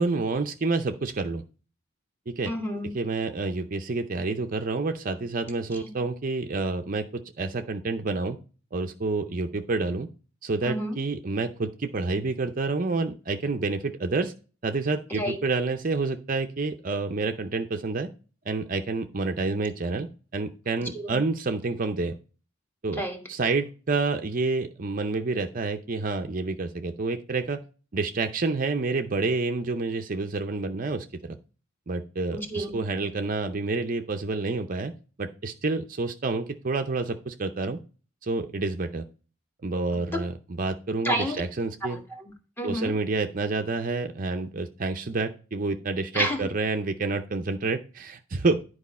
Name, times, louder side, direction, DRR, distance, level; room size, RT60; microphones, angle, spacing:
voice 1, 0.0-1.4 2.3-2.5 2.9-8.4 8.7-10.1 10.4-14.3 14.6-18.1 18.5-20.1 20.3-22.1 22.8-23.0 23.3-27.6 27.9-31.4 31.9-34.9 35.2-37.8 38.2-39.1 39.6-42.0 42.6-48.6, right 3 dB, 40° right, 7 dB, 0.6 m, -28 dB
voice 2, 2.5-2.9 10.6-11.0 15.1-15.4 20.9-21.2 22.9-23.2 32.3-32.8 40.1-40.2 41.0-41.4 41.8-42.9 46.1-46.4, equal, 10° left, 3 dB, 1.3 m, -30 dB
10.5 x 4.8 x 4.2 m, 0.35 s
head